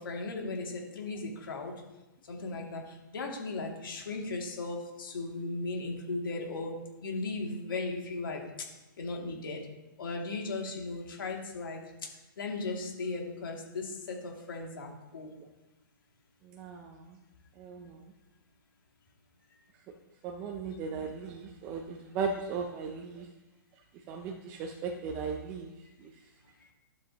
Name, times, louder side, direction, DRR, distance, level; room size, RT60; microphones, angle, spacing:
voice 1, 0.0-1.7 2.3-6.7 7.0-8.4 9.0-9.6 10.0-11.8 12.4-15.3, left 3 dB, 75° left, 0 dB, 2.4 m, -36 dB
voice 2, 16.4-17.2 17.6-18.0 20.2-23.3 24.1-25.7 26.0-26.1, right 5 dB, 15° right, 2 dB, 0.5 m, -37 dB
12.0 x 7.3 x 2.9 m, 1.0 s
hypercardioid pair, 170°, 11 cm